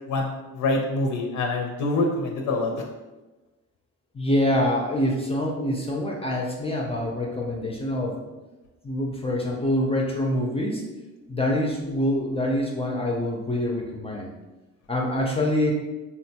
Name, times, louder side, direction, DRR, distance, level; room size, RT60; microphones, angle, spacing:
voice 1, 0.1-2.7, left 2 dB, 75° left, 2 dB, 0.5 m, -25 dB
voice 2, 4.1-8.2 8.8-10.8 11.3-14.3 14.9-15.7, left 1 dB, 20° left, -1 dB, 0.3 m, -25 dB
3.7 x 2.2 x 2.7 m, 1.1 s
cardioid pair, 135°, 31 cm